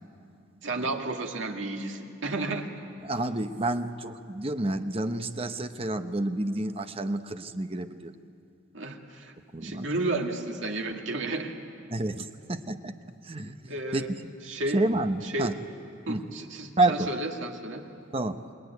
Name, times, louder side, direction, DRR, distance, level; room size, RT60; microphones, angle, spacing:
voice 1, 0.6-2.7 8.7-9.3 9.6-11.5 13.7-14.1 14.5-14.8 15.2-15.5 16.1-17.8, right 2 dB, 70° right, 2 dB, 2.1 m, -32 dB
voice 2, 3.0-8.1 9.5-9.9 11.9-12.9 13.2-14.3 14.7-15.5 16.1-16.2 16.8-17.1 18.1-18.4, right 2 dB, 30° right, 8 dB, 0.9 m, -29 dB
28.0 x 21.5 x 9.4 m, 2.5 s
head